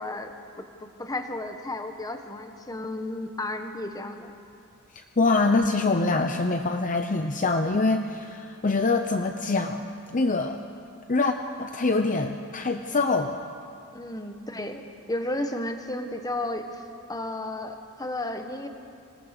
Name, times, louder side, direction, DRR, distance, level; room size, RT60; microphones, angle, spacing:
voice 1, 0.0-4.3 13.9-16.8 17.1-18.7, left 1 dB, 15° left, 6 dB, 1.4 m, -33 dB
voice 2, 5.2-9.8 10.1-10.6 11.1-13.4, left 3 dB, 35° left, 6 dB, 0.8 m, -24 dB
26.5 x 18.5 x 6.7 m, 2.5 s
head